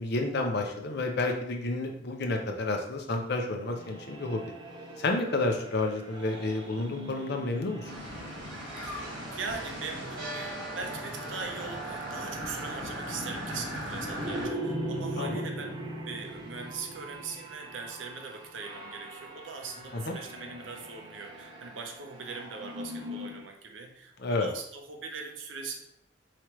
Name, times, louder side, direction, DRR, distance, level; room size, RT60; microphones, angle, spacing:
voice 1, 0.0-4.4 5.0-7.9 15.2-15.4 19.9-20.1 24.2-24.5, left 2 dB, 60° left, 3 dB, 0.7 m, -30 dB
sound 1, 3.7-23.5, right 1 dB, 25° right, 0.8 m, -41 dB
sound 2, 7.8-14.5, equal, 60° right, 1.6 m, -38 dB
voice 2, 8.8-25.8, right 4 dB, 80° right, 3 dB, 0.7 m, -41 dB
4.9 x 3.0 x 3.0 m, 0.73 s
head